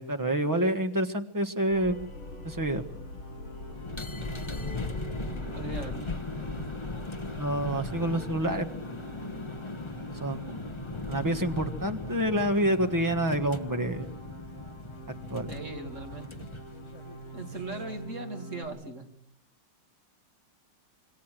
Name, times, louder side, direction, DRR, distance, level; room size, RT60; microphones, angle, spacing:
voice 1, 0.0-2.1 2.4-2.9 7.4-8.7 10.2-10.7 11.1-14.1 15.3-15.5, right 1 dB, 10° right, 6 dB, 1.2 m, -28 dB
sound 1, 1.7-8.7, left 2 dB, 75° left, 6.8 m, -42 dB
sound 2, 2.4-18.6, right 2 dB, 40° left, 6.6 m, -46 dB
sound 3, 3.7-18.1, left 3 dB, 15° left, 1.2 m, -39 dB
voice 2, 5.5-6.1 10.5-10.6 15.5-16.5 17.3-19.1, right 2 dB, 35° right, 4 dB, 2.6 m, -39 dB
26.5 x 22.0 x 7.6 m, 0.73 s
omnidirectional pair, 2.3 m